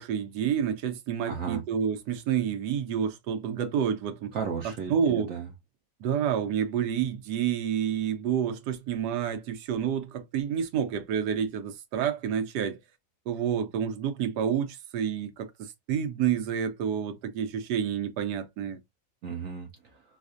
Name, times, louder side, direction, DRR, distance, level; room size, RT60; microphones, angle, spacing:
voice 1, 0.0-4.3 4.9-5.3 6.0-12.8 13.3-18.8, right 8 dB, 85° right, 1.2 m, -29 dB
voice 2, 1.3-1.6 4.3-5.5 19.2-20.0, right 6 dB, 65° right, 0.9 m, -34 dB
4.1 x 2.4 x 2.4 m
omnidirectional pair, 1.7 m